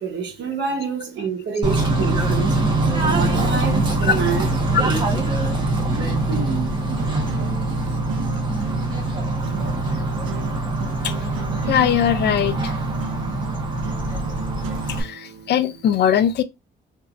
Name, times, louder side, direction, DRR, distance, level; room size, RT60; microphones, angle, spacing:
voice 1, 0.0-2.6 3.0-4.5 4.8-5.0, right 5 dB, 65° right, 1.1 m, -27 dB
Bird / Train, 1.6-15.0, right 2 dB, 25° right, 1.2 m, -23 dB
sound 1, 4.2-15.8, right 7 dB, 80° right, 0.5 m, -36 dB
voice 2, 11.0-11.3 11.7-12.7 14.9-16.4, left 9 dB, 60° left, 0.5 m, -21 dB
2.9 x 2.7 x 2.5 m
cardioid pair, 90°, 20 cm